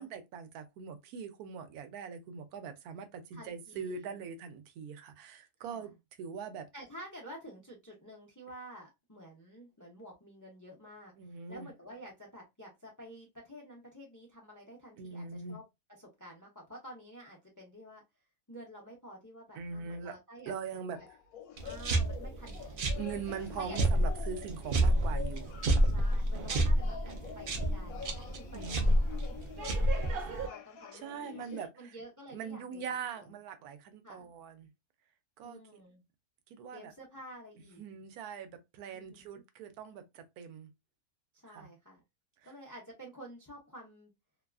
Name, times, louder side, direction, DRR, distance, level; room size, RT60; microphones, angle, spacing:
voice 1, 0.0-6.7 11.2-11.7 15.0-15.6 19.6-20.1 20.5-21.0 23.0-25.5 28.5-28.9 30.9-31.9 32.3-34.7 35.4-35.8 36.5-36.9 37.8-40.7 41.5-41.7 42.4-42.5, right 6 dB, 85° right, 1.1 m, -42 dB
voice 2, 3.3-4.2 5.7-5.9 6.7-11.1 11.5-15.6 16.0-18.0 18.5-21.1 21.6-23.0 23.6-23.8 25.8-29.4 29.8-33.3 34.0-34.3 35.4-36.0 36.7-37.8 38.9-39.4 41.4-42.0 42.4-44.1, equal, 30° left, 0.3 m, -50 dB
sound 1, 20.9-26.3 26.8-31.7, left 8 dB, 75° left, 1.0 m, -48 dB
sound 2, 21.6-30.5, right 1 dB, 65° right, 0.5 m, -30 dB
2.8 x 2.3 x 2.3 m
omnidirectional pair, 1.6 m